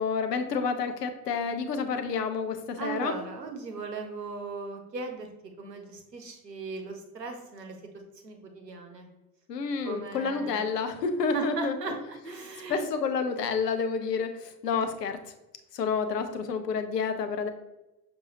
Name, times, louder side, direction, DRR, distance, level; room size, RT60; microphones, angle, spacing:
voice 1, 0.0-3.2 9.5-11.7 12.7-15.2 15.7-17.5, left 5 dB, 80° left, 7 dB, 0.7 m, -29 dB
voice 2, 2.8-5.3 5.6-7.8 8.2-9.1 9.8-10.6 11.3-12.9, right 4 dB, 85° right, 4 dB, 0.8 m, -37 dB
6.1 x 2.7 x 2.7 m, 0.99 s
figure-of-eight pair, 65°, 48 cm